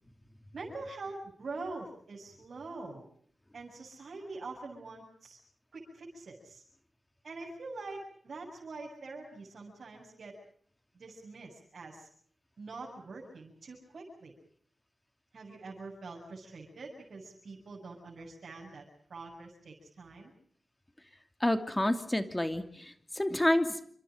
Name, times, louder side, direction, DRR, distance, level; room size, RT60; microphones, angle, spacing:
voice 1, 0.5-3.1 3.5-5.4 5.7-6.6 7.2-10.4 10.9-12.1 12.6-14.3 15.3-20.3, right 3 dB, 70° right, -2 dB, 7.0 m, -44 dB
voice 2, 21.4-23.8, left 1 dB, 15° left, 8 dB, 2.8 m, -29 dB
29.0 x 26.0 x 5.1 m, 0.62 s
wide cardioid pair, 80°, 0 cm